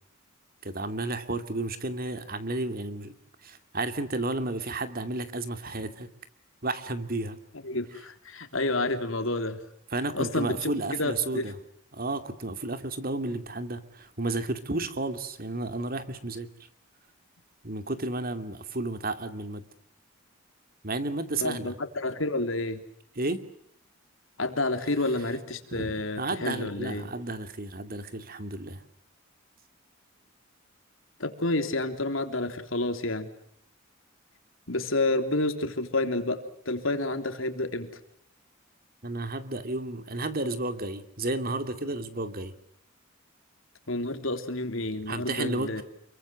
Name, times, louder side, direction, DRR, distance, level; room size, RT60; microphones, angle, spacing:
voice 1, 0.6-3.1 3.4-6.1 6.6-7.4 9.9-11.5 11.9-16.5 17.6-19.6 20.8-21.7 23.2-23.4 25.7-28.8 39.0-42.5 45.1-45.8, right 2 dB, 45° right, 10 dB, 2.5 m, -32 dB
voice 2, 7.6-9.6 10.1-10.7 11.0-11.5 21.4-22.8 24.4-27.1 31.2-33.3 34.7-37.9 43.9-45.8, left 2 dB, 75° left, 7 dB, 3.6 m, -29 dB
29.0 x 23.0 x 7.6 m, 0.73 s
head